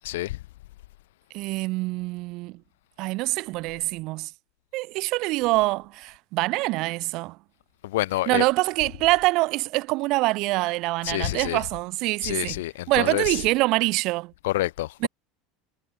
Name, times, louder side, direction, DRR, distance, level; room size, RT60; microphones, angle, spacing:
voice 1, 0.0-0.4 7.8-8.4 11.0-11.6 12.2-13.4 14.4-15.1, left 17 dB, 75° left, 2.0 m, -27 dB
voice 2, 1.3-2.6 3.0-4.3 4.7-7.4 8.3-14.3 15.0-15.1, right 22 dB, 60° right, 2.1 m, -25 dB
hypercardioid pair, 80°, 0 cm